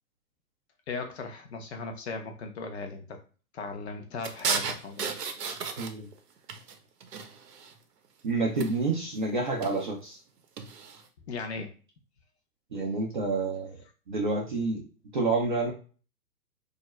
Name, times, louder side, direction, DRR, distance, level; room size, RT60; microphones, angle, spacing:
voice 1, 0.9-3.2 3.5-5.2 11.3-11.7, left 4 dB, 45° left, 4 dB, 0.6 m, -37 dB
sound 1, 4.2-6.2 6.5-7.8 8.6-9.0 9.5-9.9 10.6-11.0, right 5 dB, 75° right, 0.7 m, -34 dB
voice 2, 8.2-10.2 12.7-13.8 14.1-14.9 15.1-15.7, right 3 dB, 35° right, -1 dB, 0.4 m, -28 dB
2.3 x 2.1 x 3.0 m, 0.36 s
figure-of-eight pair, 120°, 48 cm